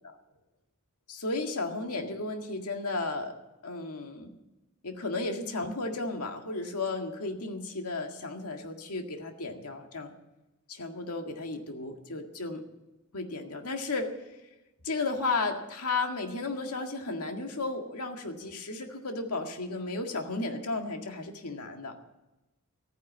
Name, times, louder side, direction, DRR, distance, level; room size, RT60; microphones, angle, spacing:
voice 1, 1.1-3.4 3.6-4.3 4.8-10.1 10.7-12.6 13.1-14.4 14.8-22.0, left 3 dB, 90° left, 4 dB, 1.9 m, -34 dB
15.0 x 9.9 x 7.4 m, 1.0 s
head